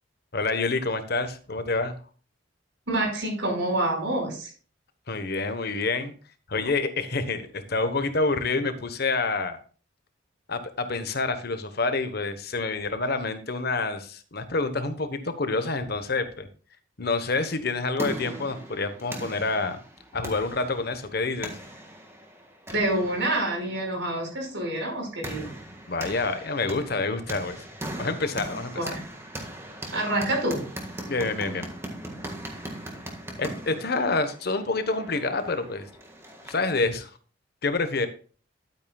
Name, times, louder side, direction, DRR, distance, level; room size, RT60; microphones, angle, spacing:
voice 1, 0.3-1.9 5.1-6.1 6.5-9.6 10.5-16.5 17.0-19.8 20.1-21.6 25.9-27.7 28.0-28.7 31.1-31.7 33.4-35.9 36.4-37.1 37.6-38.1, left 3 dB, 55° left, 9 dB, 1.1 m, -27 dB
voice 2, 2.9-4.5 22.7-25.5 28.8-29.0 29.9-30.6, right 1 dB, 75° right, 1 dB, 5.3 m, -27 dB
sound 1, 17.5-36.8, right 1 dB, 15° right, 1.6 m, -40 dB
12.0 x 8.7 x 2.3 m, 0.39 s
head